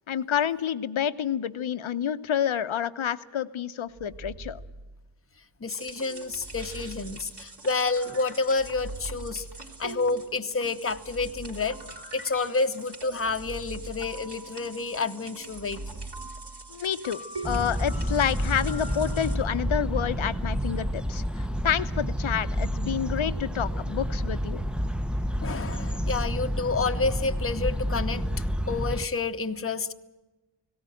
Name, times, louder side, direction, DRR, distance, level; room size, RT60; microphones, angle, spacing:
voice 1, 0.1-4.6 16.7-24.6, left 9 dB, 70° left, 12 dB, 1.0 m, -29 dB
sound 1, 3.9-5.4 6.2-7.9 8.5-10.3 10.9-12.4 13.1-14.9 15.4-17.1 17.8-19.5 20.0-21.8 22.4-23.2, right 2 dB, 30° right, 1.1 m, -43 dB
voice 2, 5.6-9.4 9.8-11.8 12.1-16.0 23.7-23.8 25.4-28.3 28.7-29.9, left 3 dB, 25° left, 8 dB, 0.9 m, -29 dB
sound 2, 5.7-19.4, right 2 dB, 55° right, 3.9 m, -43 dB
sound 3, 17.4-29.1, equal, ahead, 0.8 m, -29 dB
18.0 x 17.5 x 9.1 m, 1.1 s
wide cardioid pair, 110°, 49 cm